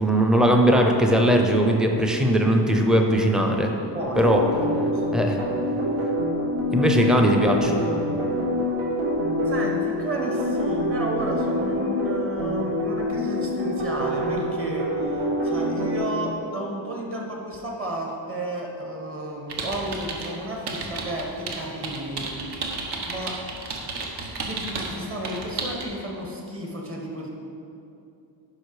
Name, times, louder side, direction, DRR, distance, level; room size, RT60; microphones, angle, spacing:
voice 1, 0.0-3.7 4.2-4.4 5.1-5.4 6.7-7.8, equal, ahead, 2 dB, 0.5 m, -19 dB
voice 2, 3.9-5.5 9.4-22.7 23.1-23.4 24.4-27.3, right 1 dB, 30° right, 0 dB, 1.3 m, -32 dB
sound 1, 4.0-16.0, equal, 85° right, 2.2 m, -26 dB
sound 2, 19.5-20.3 20.7-24.9 25.2-25.8, right 3 dB, 60° right, 1.2 m, -32 dB
11.0 x 5.4 x 4.8 m, 2.7 s
cardioid pair, 170°, 46 cm